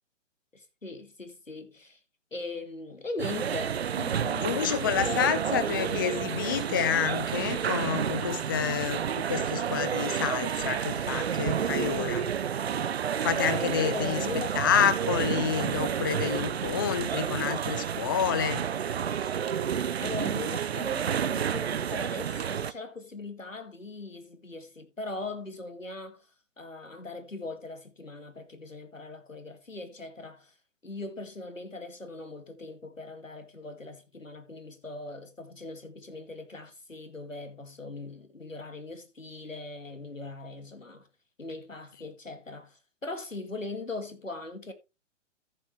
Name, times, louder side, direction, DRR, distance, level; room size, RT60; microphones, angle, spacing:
voice 1, 0.5-2.0 2.3-5.9 13.8-14.6 20.0-26.3 26.6-30.5 30.8-41.1 41.4-44.7, left 2 dB, 85° left, 2.3 m, -40 dB
sound 1, 3.2-22.7, right 8 dB, 55° right, 0.8 m, -30 dB
voice 2, 4.4-12.3 13.2-14.2 14.5-18.7, left 8 dB, 20° left, 0.4 m, -29 dB
14.5 x 7.1 x 3.2 m
figure-of-eight pair, 125°, 38 cm